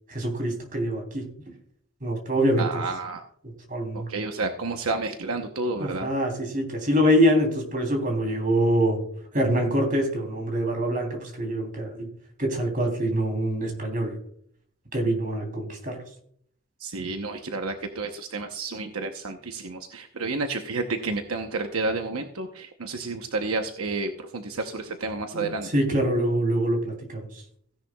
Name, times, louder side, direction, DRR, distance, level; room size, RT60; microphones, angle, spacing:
voice 1, 0.1-1.3 2.0-2.8 3.7-4.1 5.8-9.0 9.3-12.1 12.4-14.1 14.9-16.0 25.3-27.2, equal, 40° right, 3 dB, 3.3 m, -25 dB
voice 2, 2.6-3.2 3.9-6.1 16.8-25.8, right 3 dB, 75° right, 5 dB, 0.9 m, -30 dB
16.0 x 10.5 x 2.3 m, 0.63 s
head